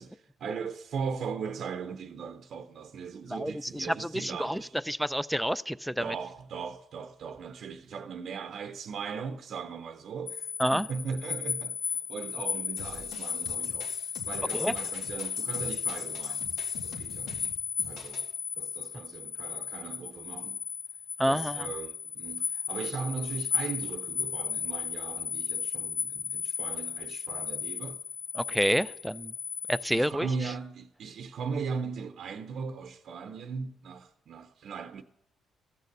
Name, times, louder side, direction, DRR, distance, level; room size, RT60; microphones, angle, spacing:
voice 1, 0.0-4.7 6.0-13.9 14.2-16.6 16.8-17.5 17.8-18.3 18.6-20.6 21.2-28.0 29.9-35.0, right 5 dB, 65° right, 0.6 m, -38 dB
voice 2, 3.3-6.1 10.6-10.9 14.5-14.7 21.2-21.7 28.3-29.3 29.7-30.3, equal, ahead, 0.4 m, -29 dB
sound 1, 10.3-30.1, left 7 dB, 50° left, 1.7 m, -35 dB
sound 2, 12.8-18.3, left 4 dB, 80° left, 1.8 m, -46 dB
15.0 x 6.6 x 6.7 m
cardioid pair, 90°, 0 cm